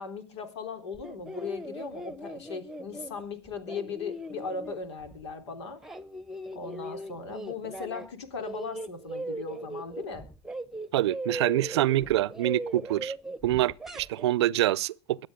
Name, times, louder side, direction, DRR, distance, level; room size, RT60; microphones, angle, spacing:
voice 1, 0.0-5.8 6.5-10.3, left 5 dB, 80° left, 3.5 m, -38 dB
sound 1, 0.9-5.3 5.6-8.1 8.4-14.3, right 1 dB, 5° right, 1.1 m, -39 dB
voice 2, 10.9-13.1 13.4-15.3, right 14 dB, 75° right, 0.6 m, -26 dB
23.5 x 8.2 x 3.7 m
hypercardioid pair, 110°, 14 cm